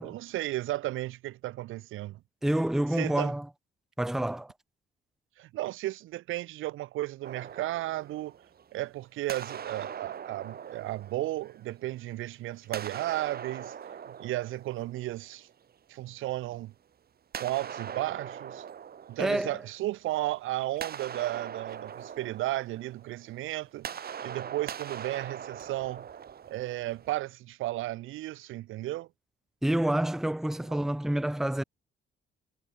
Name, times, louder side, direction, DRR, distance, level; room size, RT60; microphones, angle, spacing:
voice 1, 0.0-2.2 3.0-3.3 5.4-8.3 8.7-13.7 14.1-15.5 15.9-16.7 17.4-18.6 19.1-26.0 26.5-29.1 30.7-30.8, right 16 dB, 90° right, 1.6 m, -34 dB
voice 2, 2.4-3.5 4.0-4.5 19.2-19.6 29.6-31.6, right 1 dB, ahead, 0.6 m, -28 dB
sound 1, 7.2-8.9 9.3-12.1 12.6-15.5 17.3-20.1 20.4-27.1, right 8 dB, 50° right, 2.0 m, -42 dB
cardioid pair, 90°, 20 cm